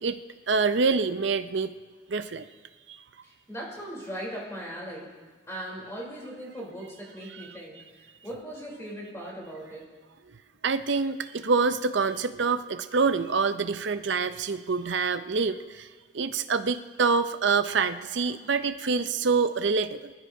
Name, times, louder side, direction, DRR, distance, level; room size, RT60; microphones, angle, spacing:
voice 1, 0.5-1.7 2.1-2.4 7.3-7.5 10.6-15.9 16.1-20.1, right 4 dB, 65° right, 11 dB, 0.6 m, -26 dB
voice 2, 3.2-5.1 5.5-9.8, equal, 15° left, -5 dB, 3.6 m, -39 dB
25.0 x 14.5 x 2.8 m, 1.4 s
head